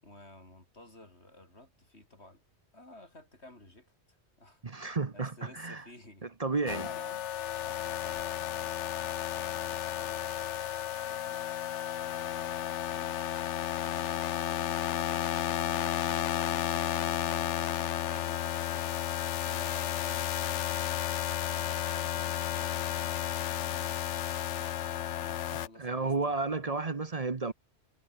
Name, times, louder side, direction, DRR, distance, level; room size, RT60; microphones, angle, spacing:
voice 1, 0.0-2.4 2.7-6.3 6.7-7.3 7.7-8.6 9.3-11.4 25.2-26.6, left 1 dB, 65° left, 6.4 m, -54 dB
voice 2, 4.6-5.8 6.4-6.9 25.5-27.5, right 3 dB, 35° right, 1.0 m, -32 dB
sound 1, 6.7-25.7, left 11 dB, 85° left, 1.0 m, -33 dB
omnidirectional pair, 1.2 m